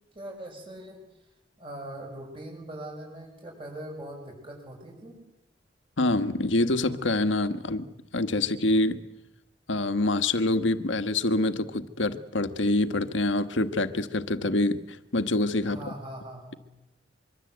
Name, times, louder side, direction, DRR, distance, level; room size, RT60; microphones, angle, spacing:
voice 1, 0.1-1.2 1.6-5.2 15.6-16.6, right 1 dB, 30° right, 1 dB, 6.5 m, -41 dB
voice 2, 6.0-7.9 8.1-9.0 9.7-14.8 15.1-15.8, left 2 dB, 80° left, 10 dB, 1.5 m, -25 dB
24.5 x 24.5 x 8.1 m, 0.89 s
head